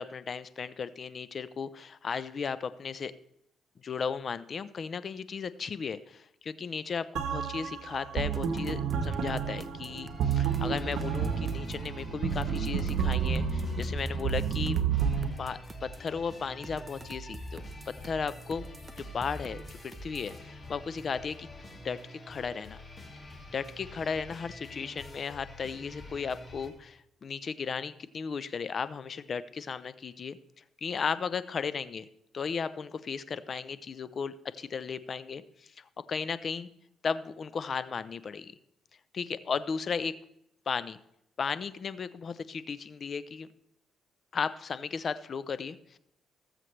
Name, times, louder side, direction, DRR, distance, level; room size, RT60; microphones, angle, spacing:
voice 1, 0.0-3.1 3.8-14.8 15.4-17.6 18.0-18.7 19.0-21.5 21.8-22.8 23.5-30.4 30.8-32.1 32.3-36.7 37.0-38.5 39.1-40.1 40.7-41.0 41.4-43.5 44.3-46.0, left 5 dB, 45° left, 15 dB, 0.6 m, -35 dB
sound 1, 7.2-15.3, right 7 dB, 80° right, 1.3 m, -30 dB
sound 2, 8.3-11.9 12.4-16.1 16.6-20.4, right 2 dB, 25° right, 0.9 m, -45 dB
sound 3, 10.0-26.7, left 2 dB, 30° left, 2.3 m, -48 dB
19.0 x 7.5 x 3.3 m, 0.78 s
cardioid pair, 90°, 0 cm